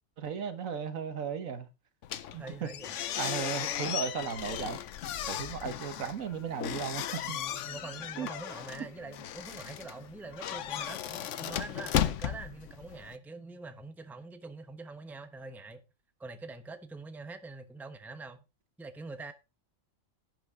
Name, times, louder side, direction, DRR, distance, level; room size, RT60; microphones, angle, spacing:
voice 1, 0.2-1.7 2.3-2.7 3.2-4.8 5.3-7.4 8.2-8.3, right 7 dB, 75° right, 1.5 m, -35 dB
sound 1, 2.0-13.2, left 10 dB, 65° left, 1.0 m, -36 dB
voice 2, 2.4-2.9 6.0-6.1 7.4-15.8 16.2-18.4 18.8-19.3, right 3 dB, ahead, 0.8 m, -45 dB
11.5 x 9.1 x 3.7 m
omnidirectional pair, 1.4 m